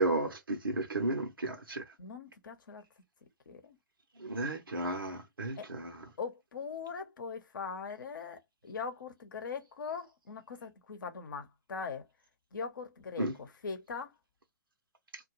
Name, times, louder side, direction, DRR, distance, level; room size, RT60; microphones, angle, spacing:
voice 1, 0.0-1.8 4.2-6.0 13.2-13.3, right 2 dB, 85° right, 0.7 m, -33 dB
voice 2, 2.0-2.8 3.5-3.8 5.6-5.7 6.2-12.1 12.5-14.1, left 5 dB, 65° left, 0.8 m, -41 dB
2.4 x 2.2 x 2.9 m
figure-of-eight pair, 120°, 11 cm